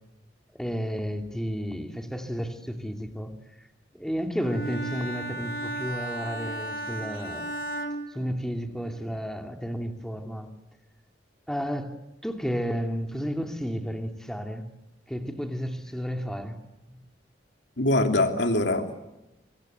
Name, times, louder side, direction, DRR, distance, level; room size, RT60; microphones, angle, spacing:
voice 1, 0.5-3.4 3.9-7.5 8.1-10.5 11.5-14.7 15.1-16.6 16.9-17.0, equal, 5° left, 2.5 m, -32 dB
Bowed string instrument, 4.4-8.9, right 1 dB, 55° left, 3.3 m, -35 dB
voice 2, 17.8-19.0, left 2 dB, 70° left, 3.1 m, -23 dB
25.5 x 25.5 x 8.0 m
head